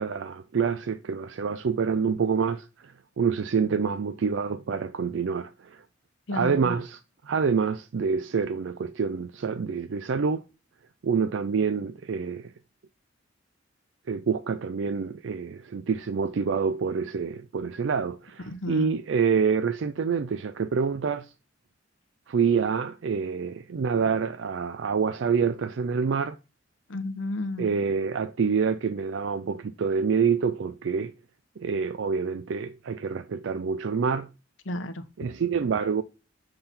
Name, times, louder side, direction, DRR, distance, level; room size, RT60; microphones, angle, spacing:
voice 1, 0.0-5.8 6.3-7.0 7.2-10.4 11.0-12.5 14.1-18.4 18.7-21.3 22.3-26.4 27.6-31.1 31.6-34.3 35.2-36.0, right 6 dB, 70° right, 0.4 m, -27 dB
voice 2, 6.3-6.8 18.5-18.9 26.9-27.8 34.6-35.0, left 1 dB, 80° left, 0.9 m, -32 dB
6.9 x 3.8 x 4.2 m
head